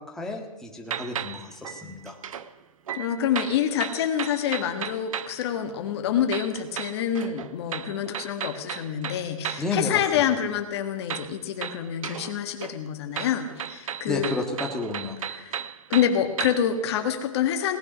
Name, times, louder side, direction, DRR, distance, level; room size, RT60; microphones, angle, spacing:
voice 1, 0.0-2.2 9.6-10.0 14.1-15.2, left 3 dB, 5° left, 0 dB, 1.7 m, -31 dB
sound 1, 0.9-2.5 2.9-5.4 6.3-9.8 11.1-12.4 12.6-16.8, right 8 dB, 70° right, 0.9 m, -35 dB
voice 2, 2.9-14.4 15.2-15.6 15.9-17.8, left 9 dB, 50° left, 6 dB, 1.6 m, -27 dB
18.5 x 9.7 x 6.2 m, 1.1 s
hypercardioid pair, 145°, 18 cm